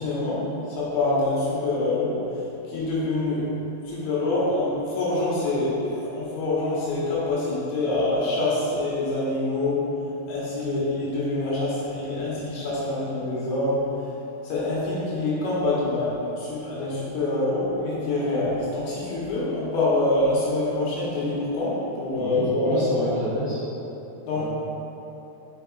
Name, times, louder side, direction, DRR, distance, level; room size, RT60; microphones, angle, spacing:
voice 1, 0.0-2.2 2.7-3.5 3.8-9.9 10.3-13.8 14.4-23.1 24.3-24.4, left 2 dB, 70° left, -8 dB, 3.2 m, -25 dB
voice 2, 22.2-23.6 24.3-24.4, right 1 dB, 70° right, -13 dB, 1.5 m, -29 dB
6.9 x 6.7 x 2.4 m, 3.0 s
omnidirectional pair, 4.8 m